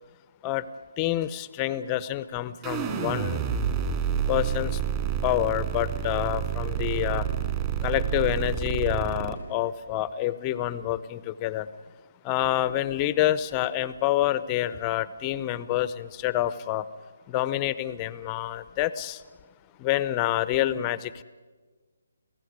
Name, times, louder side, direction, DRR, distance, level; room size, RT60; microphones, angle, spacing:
voice 1, 1.0-3.4 4.3-4.8 5.2-7.3 7.8-11.7 12.2-16.9 17.3-19.2 19.8-21.2, left 13 dB, 25° left, 15 dB, 0.8 m, -27 dB
sound 1, 2.6-9.3, right 8 dB, 25° right, 3.2 m, -29 dB
29.0 x 16.5 x 9.6 m, 1.4 s
figure-of-eight pair, 150°, 0 cm